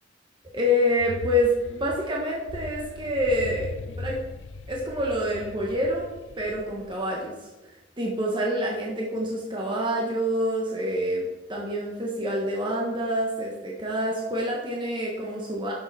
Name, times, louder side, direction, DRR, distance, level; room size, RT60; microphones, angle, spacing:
voice 1, 0.5-3.7 4.0-4.2 4.7-6.0 6.4-7.3 8.0-15.7, equal, 25° right, -3 dB, 1.4 m, -27 dB
sound 1, 0.8-7.2, left 3 dB, 75° left, 0.6 m, -39 dB
11.5 x 7.0 x 4.3 m, 1.1 s
head